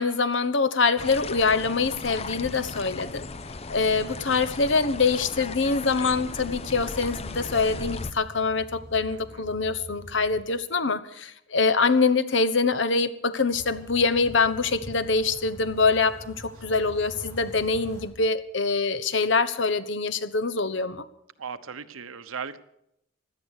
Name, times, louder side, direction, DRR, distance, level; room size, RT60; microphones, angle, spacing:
voice 1, 0.0-3.3 3.7-21.0, left 4 dB, 60° left, 13 dB, 1.0 m, -24 dB
sound 1, 1.0-8.1, left 3 dB, 30° left, 0.6 m, -36 dB
sound 2, 6.6-10.4 13.5-18.1, equal, 15° left, 3.6 m, -45 dB
voice 2, 9.1-9.5 21.4-22.6, right 6 dB, 85° right, 12 dB, 1.0 m, -37 dB
17.0 x 11.5 x 6.6 m, 0.79 s
head